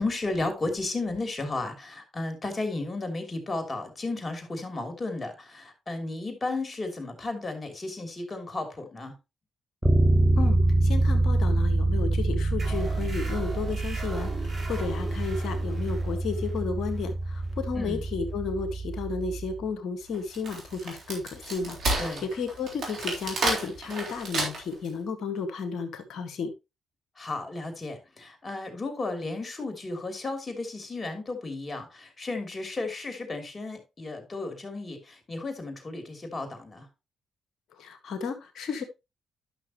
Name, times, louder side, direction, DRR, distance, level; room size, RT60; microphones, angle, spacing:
voice 1, 0.0-9.1 17.8-18.0 22.0-22.2 27.2-36.9, left 2 dB, 35° left, 3.1 m, -34 dB
Bass guitar, 9.8-19.7, right 2 dB, 10° right, 1.9 m, -26 dB
voice 2, 10.8-22.0 22.4-26.5 37.8-38.8, left 5 dB, 70° left, 1.7 m, -33 dB
sound 1, 12.6-19.7, right 2 dB, 50° right, 3.7 m, -41 dB
Wood, 20.1-24.9, right 2 dB, 65° right, 3.6 m, -31 dB
11.0 x 6.2 x 3.0 m
hypercardioid pair, 50°, 0 cm